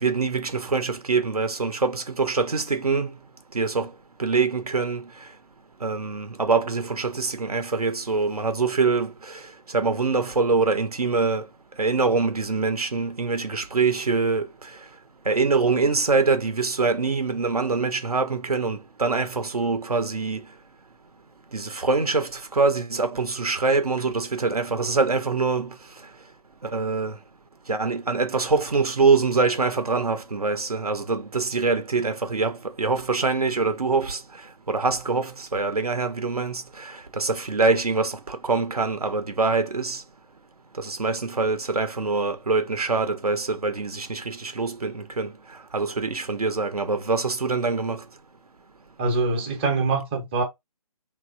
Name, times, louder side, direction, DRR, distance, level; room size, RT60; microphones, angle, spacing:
voice 1, 0.0-3.1 3.5-3.9 4.2-5.0 5.8-9.4 9.7-11.5 11.8-14.5 15.3-20.4 21.5-25.7 26.6-27.2 27.7-34.2 34.7-40.0 40.8-45.3 45.7-48.0, right 4 dB, 80° right, 0.6 m, -24 dB
voice 2, 49.0-50.4, right 3 dB, 20° right, 0.6 m, -24 dB
3.0 x 2.3 x 2.4 m
figure-of-eight pair, 140°, 19 cm